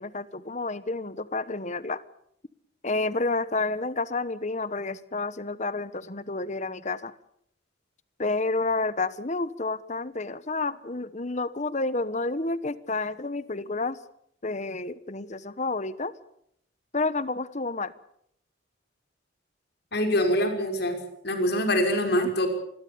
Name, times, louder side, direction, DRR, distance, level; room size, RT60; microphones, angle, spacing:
voice 1, 0.0-2.0 2.8-7.1 8.2-14.0 14.4-16.1 16.9-17.9 22.2-22.3, left 3 dB, 35° left, 16 dB, 1.1 m, -30 dB
voice 2, 19.9-21.0 21.2-22.5, equal, 55° left, 5 dB, 5.5 m, -24 dB
26.5 x 21.5 x 7.0 m, 0.73 s
head